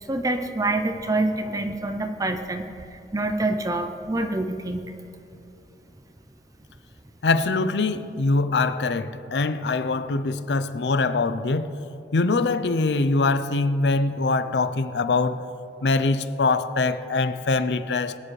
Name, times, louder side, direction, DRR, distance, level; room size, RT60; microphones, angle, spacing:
voice 1, 0.0-4.9, right 2 dB, 20° right, 6 dB, 0.6 m, -26 dB
voice 2, 7.2-11.8 12.1-15.4 15.8-18.2, left 3 dB, 75° left, 12 dB, 0.5 m, -23 dB
20.5 x 9.9 x 3.2 m, 2.8 s
head